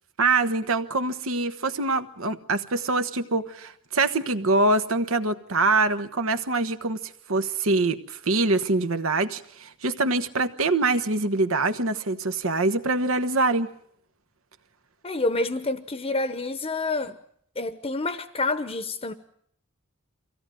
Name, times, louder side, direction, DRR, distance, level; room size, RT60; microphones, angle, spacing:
voice 1, 0.2-7.0 7.3-13.7, right 3 dB, 70° right, 1.3 m, -24 dB
voice 2, 15.0-17.2 17.6-19.1, left 2 dB, 30° left, 1.0 m, -28 dB
24.5 x 17.0 x 9.1 m
head